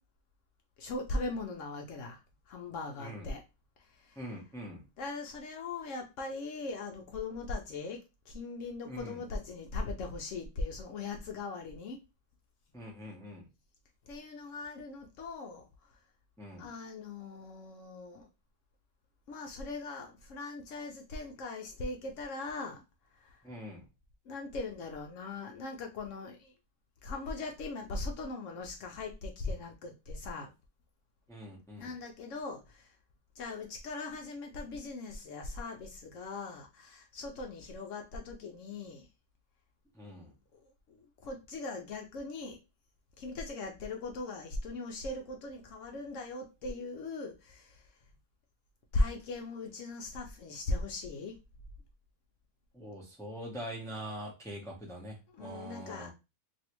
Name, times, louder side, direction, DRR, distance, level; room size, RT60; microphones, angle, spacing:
voice 1, 0.8-3.4 3.8-4.2 5.0-12.0 14.0-16.0 16.6-18.3 19.3-22.8 23.1-23.5 24.3-26.5 27.0-30.5 31.8-33.0 33.3-39.1 40.5-42.6 43.2-47.9 48.9-51.3 55.3-56.1, left 3 dB, 70° left, 0.9 m, -39 dB
voice 2, 3.0-3.3 4.2-4.8 8.8-9.2 12.7-13.5 16.4-16.7 23.4-23.9 31.3-32.0 39.9-40.3 52.7-56.1, equal, 5° left, 0.5 m, -43 dB
3.1 x 2.7 x 2.9 m
omnidirectional pair, 1.4 m